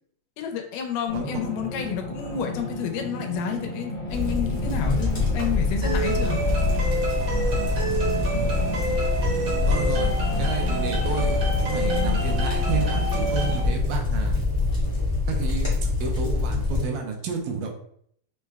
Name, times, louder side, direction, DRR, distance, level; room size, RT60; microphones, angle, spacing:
voice 1, 0.4-6.4, left 7 dB, 85° left, 4 dB, 2.2 m, -30 dB
sound 1, 1.1-13.6, left 1 dB, 60° left, 1.7 m, -34 dB
sound 2, 4.1-16.8, left 3 dB, 20° left, 0.8 m, -25 dB
sound 3, 5.8-13.6, right 3 dB, 55° right, 1.2 m, -29 dB
voice 2, 9.7-14.4 15.3-15.7 16.0-17.7, right 6 dB, 80° right, 2 dB, 2.1 m, -31 dB
5.6 x 2.2 x 3.3 m, 0.65 s
omnidirectional pair, 3.8 m